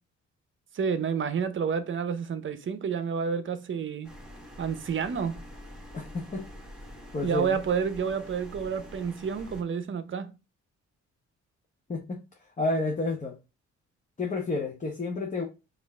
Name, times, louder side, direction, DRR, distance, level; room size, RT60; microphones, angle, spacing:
voice 1, 0.7-4.1 4.6-5.4 7.2-10.3, right 6 dB, 40° right, 0.7 m, -29 dB
sound 1, 4.0-9.6, left 1 dB, ahead, 1.3 m, -46 dB
voice 2, 5.9-6.4 7.1-7.6 11.9-12.2 12.6-13.3 14.2-15.5, left 2 dB, 25° left, 0.8 m, -30 dB
5.1 x 2.6 x 3.5 m
cardioid pair, 90°, 30 cm